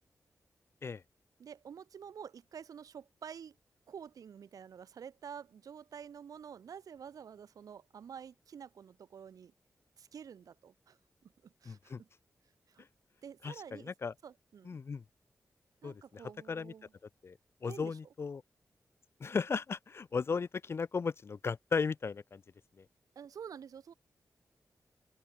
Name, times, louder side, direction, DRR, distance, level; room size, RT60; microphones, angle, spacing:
voice 1, 1.4-3.6 3.9-9.5 10.0-11.0 11.2-12.1 12.7-12.8 13.2-13.9 14.2-14.8 15.8-16.9 17.6-18.0 23.2-23.9, right 7 dB, 85° right, 0.8 m, -49 dB
voice 2, 11.7-12.0 13.4-14.1 14.7-15.0 15.8-16.2 16.5-16.7 17.2-18.4 19.2-22.4 22.8-22.9, left 5 dB, 45° left, 0.4 m, -36 dB
open air
wide cardioid pair, 90°, 6 cm